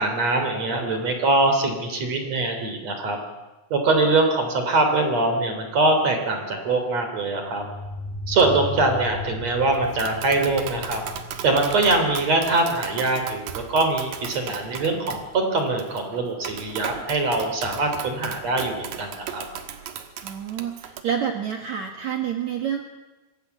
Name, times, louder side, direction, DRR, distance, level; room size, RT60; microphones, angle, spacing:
voice 1, 0.0-3.2 3.7-7.7 8.3-11.0 11.4-19.4, right 2 dB, 35° right, 5 dB, 3.8 m, -23 dB
sound 1, 2.0-2.1 7.4-11.9, left 2 dB, 50° left, 6.3 m, -36 dB
Tap, 9.7-21.0, right 8 dB, 60° right, 2.5 m, -37 dB
voice 2, 20.2-22.8, right 8 dB, 80° right, 4 dB, 1.6 m, -28 dB
25.5 x 20.0 x 8.2 m, 1.1 s
omnidirectional pair, 5.7 m